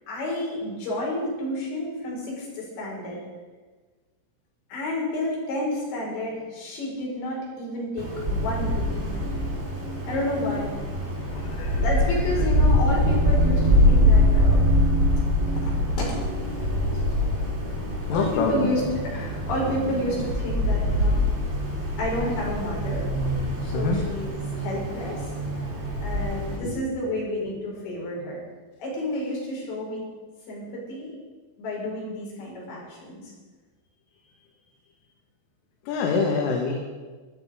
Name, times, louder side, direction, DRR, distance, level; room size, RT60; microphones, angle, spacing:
voice 1, 0.0-3.2 4.7-9.5 10.1-10.7 11.7-14.7 15.5-16.2 16.6-17.5 18.1-21.3 22.0-23.1 23.6-25.3 26.0-28.4 28.8-30.0 30.5-31.2 31.6-33.3, left 1 dB, 60° left, -4 dB, 7.3 m, -30 dB
Wind, 8.0-26.6, equal, 15° right, 2.9 m, -24 dB
voice 2, 11.3-11.8 12.4-12.5 18.1-18.8 23.7-24.0 26.6-26.8 35.9-36.7, left 4 dB, 75° left, 0 dB, 4.1 m, -25 dB
16.5 x 13.0 x 5.1 m, 1.3 s
omnidirectional pair, 5.9 m